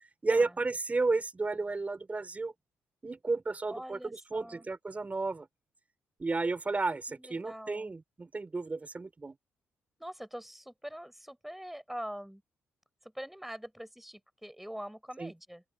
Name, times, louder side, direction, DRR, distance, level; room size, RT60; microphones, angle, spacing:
voice 1, 0.2-2.5 3.0-5.5 6.2-9.4 15.2-15.3, right 3 dB, 30° right, 4.1 m, -32 dB
voice 2, 3.7-4.7 7.1-7.9 10.0-12.4 13.0-15.6, equal, 5° right, 6.4 m, -44 dB
open air
supercardioid pair, 60°, 5 cm